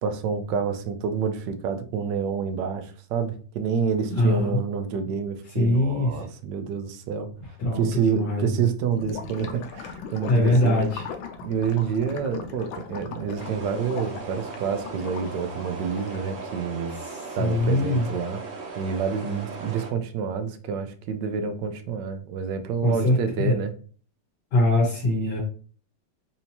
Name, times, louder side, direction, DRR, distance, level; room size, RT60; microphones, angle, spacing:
voice 1, 0.0-7.3 7.7-10.8 11.4-17.0 17.4-18.4 18.8-23.7, right 6 dB, 75° right, 8 dB, 1.2 m, -28 dB
voice 2, 4.1-4.6 5.5-6.2 7.6-8.6 10.3-11.0 16.9-18.1 22.8-23.6 24.5-25.4, left 1 dB, 70° left, -2 dB, 1.5 m, -23 dB
Gurgling / Liquid, 8.9-16.7, left 6 dB, 90° left, 1.4 m, -39 dB
sound 1, 13.3-19.9, right 4 dB, 50° right, 1.2 m, -38 dB
4.3 x 2.7 x 2.8 m, 0.41 s
omnidirectional pair, 2.1 m